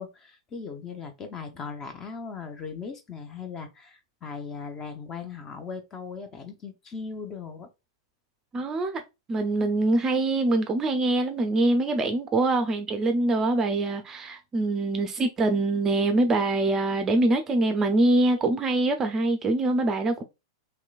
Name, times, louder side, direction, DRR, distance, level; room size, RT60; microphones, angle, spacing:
voice 1, 0.0-7.7, left 5 dB, 25° left, 0.7 m, -38 dB
voice 2, 8.5-9.0 9.3-20.2, right 2 dB, 20° right, 0.5 m, -24 dB
3.2 x 2.9 x 2.3 m
figure-of-eight pair, 100°, 2 cm